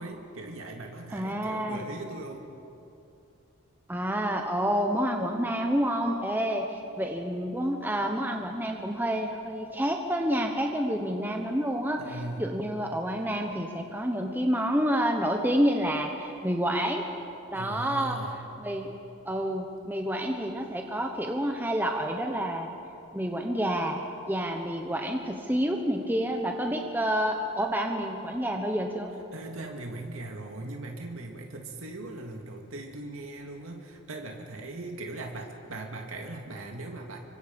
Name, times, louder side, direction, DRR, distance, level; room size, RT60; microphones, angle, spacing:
voice 1, 0.0-2.5 12.0-12.5 17.5-18.4 29.3-37.2, right 2 dB, 85° right, 2 dB, 2.2 m, -39 dB
voice 2, 1.1-1.8 3.9-17.0 17.5-18.2 18.6-18.9 19.2-22.7 23.1-24.0 24.3-29.1, equal, 10° right, 2 dB, 1.1 m, -28 dB
26.5 x 24.5 x 5.3 m, 2.8 s
head